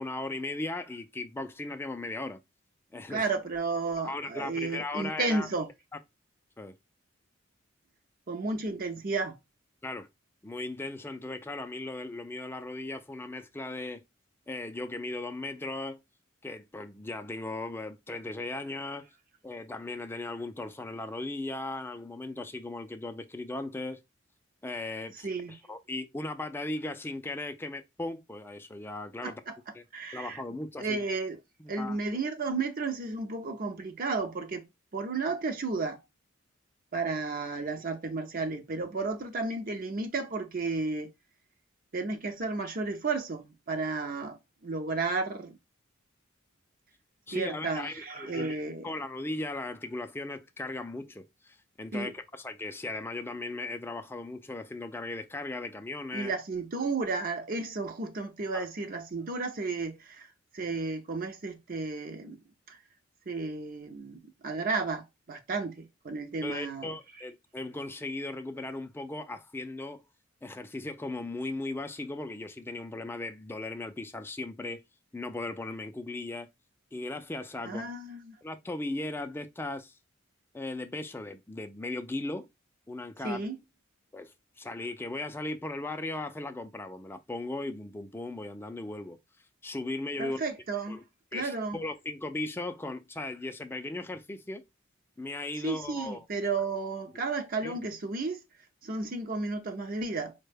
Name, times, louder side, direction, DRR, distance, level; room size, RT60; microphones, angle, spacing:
voice 1, 0.0-2.4 2.9-3.2 4.0-5.5 6.6-6.7 9.8-10.1 10.4-14.0 14.5-16.0 16.4-19.1 19.4-24.0 24.6-29.4 29.7-29.8 30.1-31.0 31.6-32.2 47.3-48.6 48.8-56.3 58.5-58.7 66.4-70.0 70.4-74.8 75.1-76.5 76.9-77.8 78.4-79.9 80.5-82.5 82.9-83.5 84.1-89.2 89.6-90.4 90.9-91.0 91.3-94.6 95.2-96.3 97.6-97.8, left 2 dB, 10° left, 0.4 m, -37 dB
voice 2, 3.1-5.7 8.3-9.4 25.2-25.5 29.2-29.6 29.9-30.4 30.8-31.4 31.7-34.7 34.9-36.0 36.9-41.1 41.9-45.6 47.3-48.8 51.9-52.1 56.1-60.3 60.5-62.4 62.7-62.8 63.3-66.9 77.6-78.4 83.2-83.6 90.2-91.0 91.3-91.8 95.6-98.4 98.8-100.3, right 3 dB, 45° right, 0.6 m, -33 dB
4.3 x 2.2 x 3.2 m
head